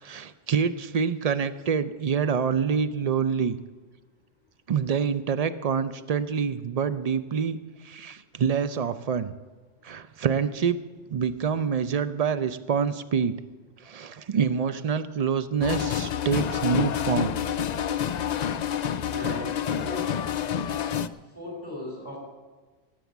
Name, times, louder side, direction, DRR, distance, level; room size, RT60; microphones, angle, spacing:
voice 1, 0.0-3.6 4.7-9.3 9.8-10.8 11.1-13.3 13.8-17.3, right 6 dB, 55° right, 13 dB, 0.4 m, -26 dB
sound 1, 15.6-21.1, left 8 dB, 80° left, 0.3 m, -28 dB
voice 2, 19.0-20.1 21.3-22.2, left 1 dB, 20° right, -2 dB, 4.1 m, -37 dB
18.0 x 7.7 x 7.1 m, 1.3 s
omnidirectional pair, 1.3 m